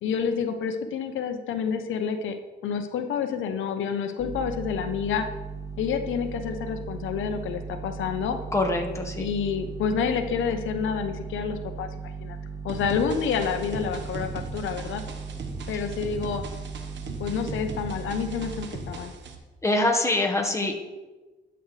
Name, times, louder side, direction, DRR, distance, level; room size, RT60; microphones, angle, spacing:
voice 1, 0.0-2.3 2.6-5.3 5.8-8.4 9.2-11.9 12.2-12.4 12.6-15.0 15.7-16.4 17.1-19.1, left 6 dB, 80° left, 7 dB, 0.8 m, -28 dB
sound 1, 4.2-18.7, right 4 dB, 15° right, 1.2 m, -37 dB
voice 2, 8.5-9.3 19.6-20.7, left 2 dB, 15° left, 2 dB, 1.4 m, -24 dB
sound 2, 12.7-19.3, right 4 dB, 65° right, 1.3 m, -39 dB
12.0 x 7.9 x 3.3 m, 1.2 s
cardioid pair, 90°, 20 cm